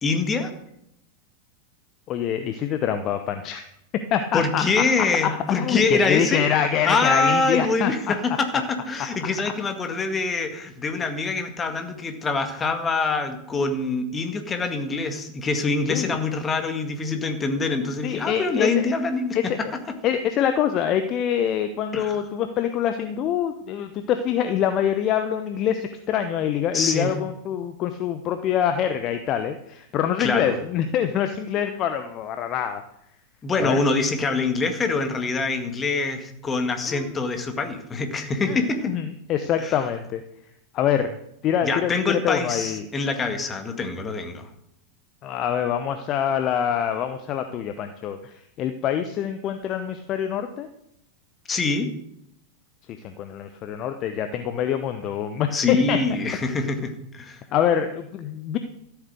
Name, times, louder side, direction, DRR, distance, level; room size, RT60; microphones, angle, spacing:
voice 1, 0.0-0.5 4.3-6.5 6.8-19.4 21.9-22.2 26.7-27.1 30.2-30.6 33.4-38.9 39.6-39.8 41.6-44.4 51.5-51.9 55.5-57.4, left 3 dB, 20° left, 6 dB, 1.9 m, -25 dB
voice 2, 2.1-3.6 4.1-8.1 8.5-8.6 15.9-16.2 18.0-18.9 19.3-19.6 20.0-32.8 33.6-33.8 36.8-37.1 38.5-40.2 40.7-41.2 41.4-42.8 45.2-50.7 53.0-56.0 57.5-58.6, left 9 dB, 35° left, 9 dB, 0.8 m, -25 dB
13.5 x 8.3 x 6.6 m, 0.78 s
figure-of-eight pair, 90°, 0 cm